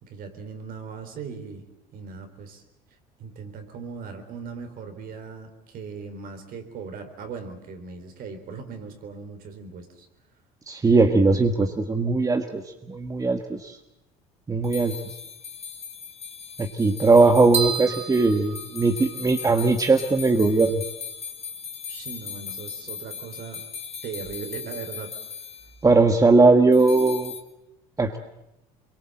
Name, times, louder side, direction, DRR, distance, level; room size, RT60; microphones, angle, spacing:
voice 1, 0.0-1.6 1.9-2.6 3.2-10.1 21.9-23.6 24.0-25.1, right 5 dB, 55° right, 7 dB, 4.0 m, -38 dB
voice 2, 10.7-12.6 12.9-13.8 14.5-15.0 16.6-20.8 25.8-27.3 28.0-28.2, right 3 dB, 20° right, 6 dB, 1.6 m, -19 dB
sound 1, 14.6-25.7 26.7-27.4, left 6 dB, 40° left, 2.5 m, -38 dB
sound 2, 17.5-19.5, right 7 dB, 35° right, 2.4 m, -31 dB
24.5 x 23.0 x 7.8 m, 0.88 s
supercardioid pair, 90°, 17 cm